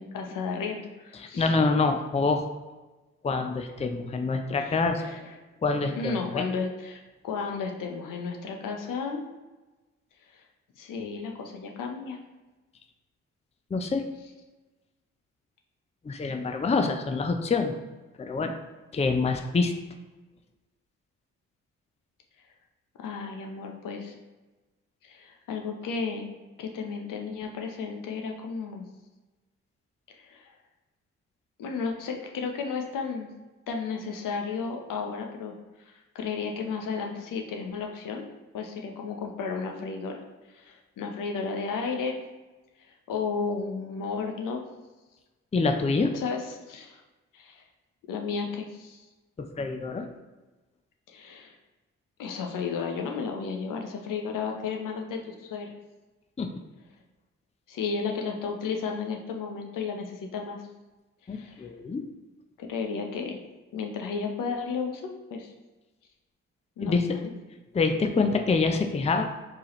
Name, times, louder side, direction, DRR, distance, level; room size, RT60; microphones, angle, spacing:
voice 1, 0.0-1.5 4.6-5.4 5.9-7.0 7.2-9.2 10.3-10.4 10.8-12.2 23.0-24.2 25.0-26.3 26.6-28.9 30.2-30.5 31.6-33.3 33.7-35.5 35.8-38.2 38.5-42.2 42.8-44.6 46.1-47.0 47.3-47.6 48.1-49.1 51.1-51.6 52.2-55.7 57.7-60.6 61.3-61.7 62.6-63.4 63.7-65.5 66.8-67.3, left 5 dB, 65° left, 2 dB, 0.8 m, -33 dB
voice 2, 1.1-2.5 3.2-5.0 5.6-6.4 13.7-14.0 16.0-17.7 18.2-18.5 18.9-19.7 45.5-46.1 49.4-50.1 56.4-56.5 61.3-62.0 66.8-67.1 67.7-69.2, left 4 dB, 20° left, 5 dB, 0.5 m, -26 dB
4.5 x 3.3 x 3.0 m, 1.2 s
hypercardioid pair, 45°, 34 cm